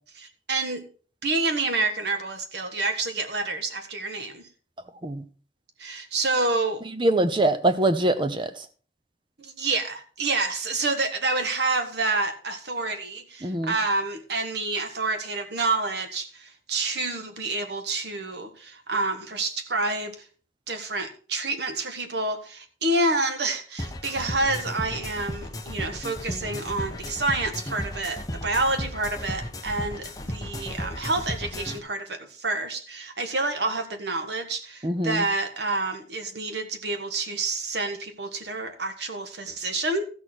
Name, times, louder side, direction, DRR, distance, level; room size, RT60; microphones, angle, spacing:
voice 1, 0.1-0.8 1.2-4.5 5.8-6.8 9.4-20.1 20.7-40.0, right 3 dB, 70° right, 7 dB, 1.5 m, -28 dB
voice 2, 7.0-8.5 13.4-13.7 34.8-35.3, right 1 dB, 25° right, 11 dB, 0.8 m, -23 dB
sound 1, 23.8-31.8, left 1 dB, 20° left, 1.0 m, -35 dB
14.0 x 6.5 x 4.4 m, 0.40 s
head